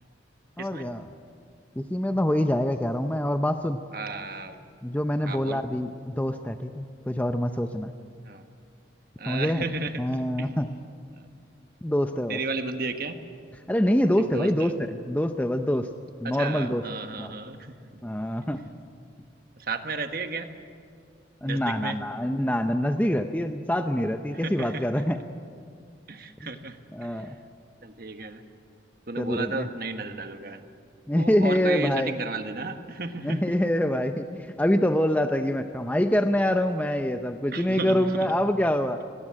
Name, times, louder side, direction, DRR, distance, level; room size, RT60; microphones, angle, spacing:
voice 1, 0.6-1.0 1.8-3.8 4.8-7.9 9.3-9.6 10.0-10.7 11.8-12.4 13.7-15.9 16.2-16.8 17.2-17.3 18.0-18.6 21.4-25.2 26.4-26.5 26.9-27.4 29.2-29.7 31.1-32.1 33.2-39.0, equal, 10° left, 7 dB, 0.6 m, -25 dB
voice 2, 3.9-4.6 5.2-5.6 8.2-8.5 9.2-10.0 10.4-10.6 12.3-13.2 14.2-14.7 16.2-17.8 19.6-20.5 21.4-22.0 24.3-24.8 26.1-27.3 27.8-28.4 29.1-30.6 31.1-33.5 37.5-38.1, right 3 dB, 50° right, 7 dB, 1.3 m, -34 dB
18.5 x 18.0 x 9.8 m, 2.2 s
head